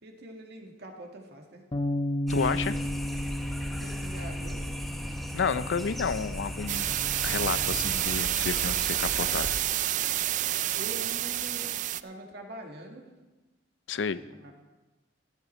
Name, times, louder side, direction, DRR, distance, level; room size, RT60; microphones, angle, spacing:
voice 1, 0.0-1.7 2.7-2.8 3.7-4.7 10.7-11.7 12.0-13.1 14.1-14.5, right 1 dB, 65° right, 2 dB, 2.0 m, -44 dB
Bass guitar, 1.7-8.0, left 1 dB, 30° left, 0.7 m, -34 dB
voice 2, 2.3-2.7 5.3-9.5 13.9-14.2, left 5 dB, 85° left, 15 dB, 0.5 m, -31 dB
sound 1, 2.3-9.6, equal, ahead, 0.9 m, -37 dB
sound 2, 6.7-12.0, right 13 dB, 45° right, 0.3 m, -29 dB
14.0 x 11.0 x 4.3 m, 1.1 s
head